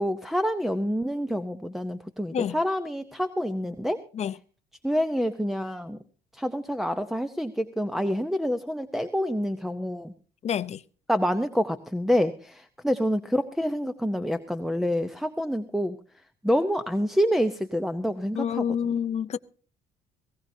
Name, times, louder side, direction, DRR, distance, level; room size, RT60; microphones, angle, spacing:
voice 1, 0.0-4.0 4.8-6.0 6.3-10.1 11.1-16.0 16.4-18.6, equal, ahead, 0.8 m, -27 dB
voice 2, 10.4-10.8 18.3-19.4, left 8 dB, 40° left, 0.6 m, -28 dB
19.5 x 17.5 x 2.7 m
cardioid pair, 110°, 17 cm